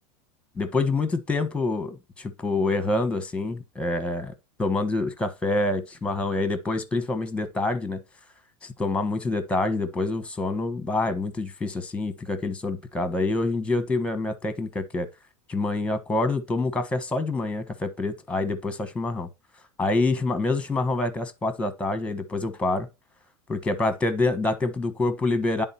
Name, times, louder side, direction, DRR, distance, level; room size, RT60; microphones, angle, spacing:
voice 1, 0.6-4.3 4.6-8.0 8.6-15.1 15.5-19.3 19.8-22.9 23.5-25.6, left 2 dB, 5° left, 1.1 m, -26 dB
10.0 x 3.7 x 4.2 m
supercardioid pair, 140°, 16 cm